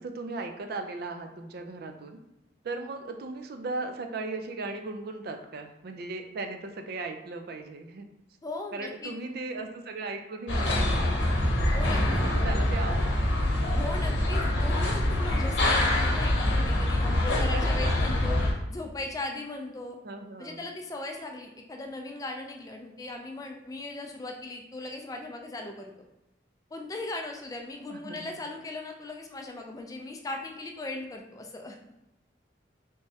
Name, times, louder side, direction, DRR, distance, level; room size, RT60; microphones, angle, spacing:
voice 1, 0.0-2.2 2.6-8.1 8.7-11.3 12.2-13.4 17.5-18.0 20.0-20.6 27.9-28.3, right 3 dB, 55° right, 5 dB, 0.4 m, -37 dB
voice 2, 8.4-9.1 11.7-12.2 13.7-18.4 18.7-20.0 20.4-25.9 26.7-31.8, left 2 dB, 20° left, 2 dB, 0.4 m, -38 dB
sound 1, 10.5-18.5, left 1 dB, 75° left, 0.8 m, -25 dB
3.4 x 3.1 x 2.7 m, 0.91 s
head